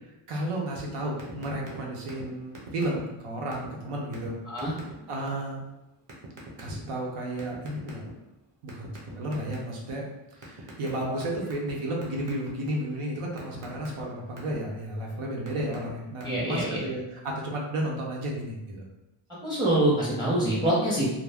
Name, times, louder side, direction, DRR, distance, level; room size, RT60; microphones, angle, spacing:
voice 1, 0.3-4.4 5.1-5.6 6.6-8.0 8.6-18.9, right 1 dB, 85° right, -2 dB, 0.8 m, -33 dB
sound 1, 1.2-1.8 2.1-2.3 2.5-3.2 3.5-3.7 4.1-4.3 4.6-4.9 6.1-6.7 7.4-8.3 8.7-9.9 10.4-11.7 12.0-12.5 12.9-14.6 15.2-15.9 16.2-16.6, right 3 dB, 40° right, 0.8 m, -43 dB
voice 2, 16.2-16.8 19.4-21.0, right 1 dB, 10° right, -8 dB, 0.6 m, -25 dB
2.3 x 2.1 x 3.4 m, 0.94 s
wide cardioid pair, 135°, 50 cm